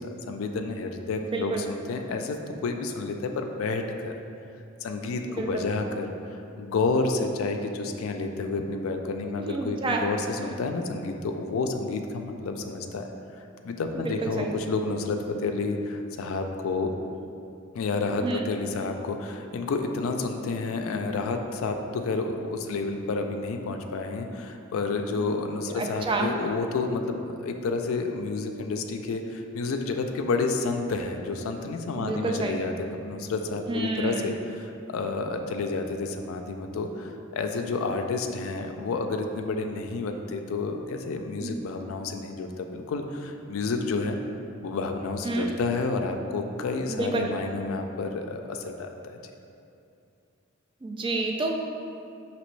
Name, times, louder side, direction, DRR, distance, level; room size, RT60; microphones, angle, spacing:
voice 1, 0.0-4.1 4.8-13.1 13.6-16.9 17.7-44.2 44.6-49.2, left 3 dB, 75° left, 5 dB, 0.4 m, -30 dB
voice 2, 1.1-1.7 5.3-5.7 9.4-10.1 10.4-10.5 13.9-14.5 18.2-18.5 25.1-25.3 25.6-26.3 32.0-32.6 33.7-34.3 41.4-41.5 45.2-45.5 46.9-47.3 50.8-51.5, right 2 dB, 25° right, 1 dB, 0.3 m, -29 dB
5.1 x 2.9 x 3.1 m, 2.6 s
head